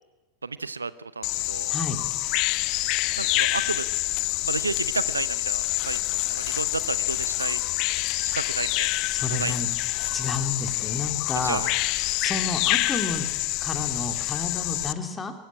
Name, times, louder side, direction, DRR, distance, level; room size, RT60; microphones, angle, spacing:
voice 1, 0.4-1.7 3.2-3.9 4.4-7.6 8.2-8.9 9.3-9.5 11.4-11.7, right 4 dB, 80° right, 17 dB, 0.7 m, -32 dB
Bird vocalization bird call bird song, 1.2-14.9, left 20 dB, 40° left, 0.7 m, -27 dB
voice 2, 1.7-2.0 9.1-9.7 10.1-11.6 12.2-13.3 13.6-15.3, left 3 dB, 15° left, 6 dB, 2.7 m, -31 dB
23.0 x 14.5 x 8.5 m, 1.2 s
figure-of-eight pair, 90°, 0 cm